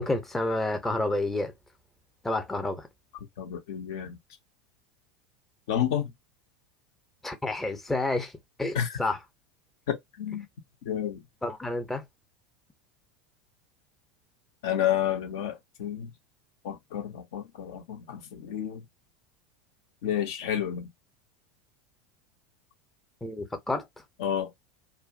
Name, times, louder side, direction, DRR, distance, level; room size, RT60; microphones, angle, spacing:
voice 1, 0.0-1.5 2.2-2.9 7.2-8.3 8.6-9.2 11.4-12.0 23.2-23.9, left 2 dB, 10° left, 0.7 m, -29 dB
voice 2, 3.4-4.2 5.7-6.1 8.7-8.9 9.9-10.5 10.9-11.2 14.6-16.1 16.6-18.8 20.0-20.9 24.2-24.5, left 10 dB, 60° left, 0.6 m, -30 dB
2.5 x 2.0 x 2.4 m
figure-of-eight pair, 80°, 2 cm